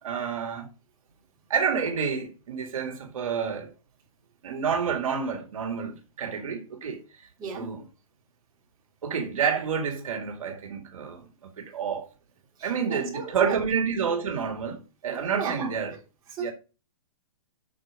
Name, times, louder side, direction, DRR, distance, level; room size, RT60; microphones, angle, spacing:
voice 1, 0.0-0.7 1.5-3.7 4.4-7.3 7.5-7.8 9.0-12.1 12.6-16.0 16.4-16.5, right 6 dB, 70° right, 2.3 m, -29 dB
voice 2, 7.4-7.7 12.6-13.6 15.3-15.7 16.3-16.5, right 5 dB, 20° right, 3.4 m, -35 dB
9.3 x 6.4 x 5.0 m
hypercardioid pair, 160°, 18 cm